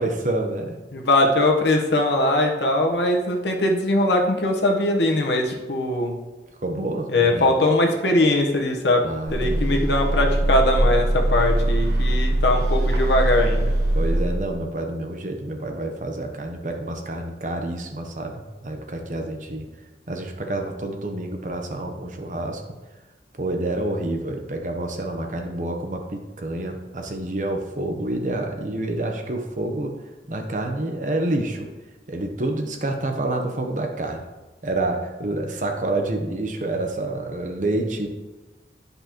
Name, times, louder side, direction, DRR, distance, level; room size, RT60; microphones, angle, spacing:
voice 1, 0.0-0.8 6.5-7.5 9.0-9.9 13.9-19.7 20.1-22.7 23.4-30.0 30.3-31.7 32.1-34.3 34.6-38.1, right 2 dB, 45° right, 4 dB, 0.8 m, -28 dB
voice 2, 0.9-6.1 7.1-9.0 9.3-13.7, left 1 dB, 80° left, 2 dB, 1.1 m, -21 dB
sound 1, 9.3-14.6, right 1 dB, 85° right, 1.2 m, -22 dB
10.5 x 5.4 x 3.0 m, 1.2 s
head